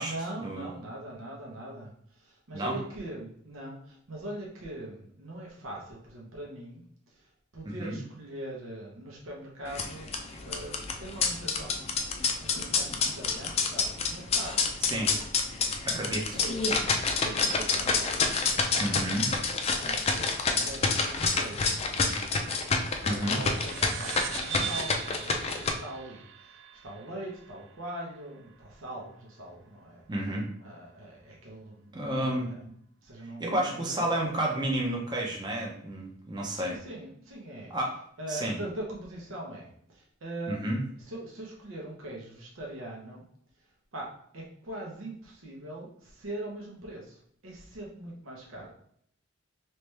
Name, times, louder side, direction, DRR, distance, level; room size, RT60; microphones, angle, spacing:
voice 1, 0.0-12.0 12.4-15.3 15.5-16.6 17.0-19.0 19.7-22.4 23.0-30.1 30.6-32.7 33.0-34.5 36.5-37.7 38.2-40.7 41.0-43.2 43.9-48.7, right 1 dB, 85° right, -2 dB, 0.9 m, -42 dB
voice 2, 7.6-8.0 14.8-15.1 15.8-16.4 18.8-19.3 23.1-23.4 30.1-30.4 31.9-32.5 33.4-36.8 37.7-38.0 38.3-38.6 40.5-40.8, right 1 dB, 20° right, -1 dB, 0.7 m, -31 dB
sound 1, 9.7-25.7, left 4 dB, 30° left, 0.4 m, -28 dB
sound 2, 23.3-28.2, right 8 dB, 65° right, 0.4 m, -40 dB
3.3 x 3.0 x 3.2 m, 0.66 s
head